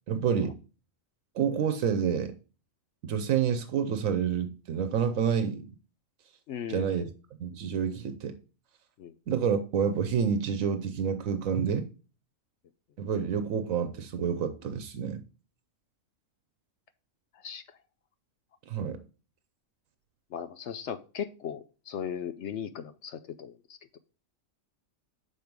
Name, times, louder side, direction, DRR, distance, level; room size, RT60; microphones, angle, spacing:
voice 1, 0.1-0.5 1.3-2.3 3.0-5.7 6.7-7.1 7.4-8.4 9.3-11.9 13.0-15.2 18.7-19.0, right 7 dB, 80° right, 1.1 m, -28 dB
voice 2, 6.5-7.0 9.0-9.1 17.4-17.6 20.3-24.0, left 8 dB, 65° left, 0.8 m, -38 dB
6.5 x 5.2 x 4.5 m
omnidirectional pair, 1.4 m